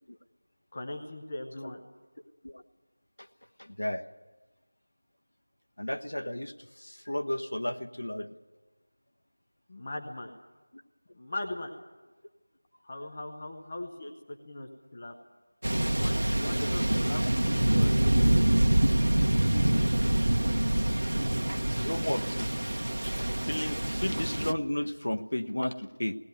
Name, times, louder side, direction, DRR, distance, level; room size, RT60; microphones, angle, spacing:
voice 1, 0.7-1.8 9.7-10.3 11.1-11.7 12.8-15.1 15.9-18.3, left 1 dB, 15° left, 3 dB, 0.7 m, -39 dB
voice 2, 3.6-4.0 5.8-8.3 21.1-21.2 21.7-22.5 23.2-26.2, left 1 dB, 60° left, 7 dB, 1.2 m, -33 dB
Thunder, 15.6-24.5, right 1 dB, 75° right, 1.3 m, -26 dB
18.5 x 18.0 x 9.3 m, 1.3 s
figure-of-eight pair, 180°, 0 cm